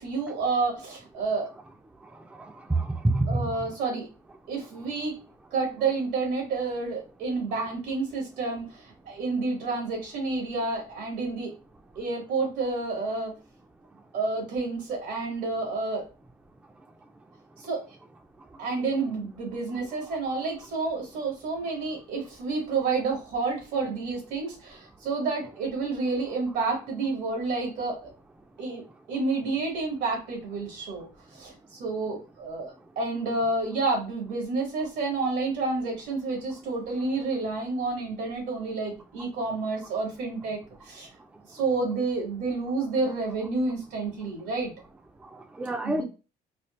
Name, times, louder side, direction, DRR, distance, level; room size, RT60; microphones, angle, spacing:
voice 1, 0.0-1.5 3.3-4.1 4.5-5.1 5.5-11.5 12.0-13.3 14.1-16.1 17.6-17.8 18.6-28.0 28.6-28.8 29.1-31.1 31.3-41.1 41.5-44.7 45.8-46.0, right 3 dB, 90° right, 2.1 m, -29 dB
voice 2, 2.4-3.7 45.6-46.0, right 2 dB, 5° right, 0.4 m, -27 dB
4.1 x 2.4 x 3.1 m
cardioid pair, 110°, 17 cm